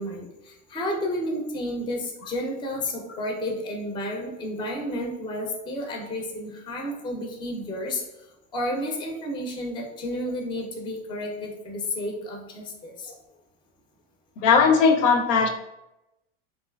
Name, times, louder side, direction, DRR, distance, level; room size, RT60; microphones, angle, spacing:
voice 1, 0.0-8.0 8.5-13.1, left 1 dB, 15° left, 1 dB, 0.4 m, -31 dB
voice 2, 14.4-15.5, left 5 dB, 70° left, 6 dB, 0.5 m, -18 dB
2.9 x 2.3 x 2.2 m, 0.90 s
hypercardioid pair, 90°, 39 cm